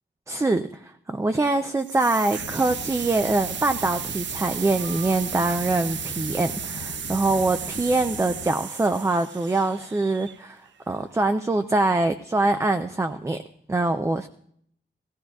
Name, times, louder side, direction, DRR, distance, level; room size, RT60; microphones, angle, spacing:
voice 1, 0.3-13.4 13.7-14.3, right 2 dB, 15° right, 7 dB, 0.4 m, -24 dB
sound 1, 1.8-10.7, right 8 dB, 70° right, 0.5 m, -34 dB
sound 2, 2.4-8.5, left 7 dB, 60° left, 0.6 m, -41 dB
18.5 x 15.0 x 2.3 m, 0.66 s
wide cardioid pair, 170°, 20 cm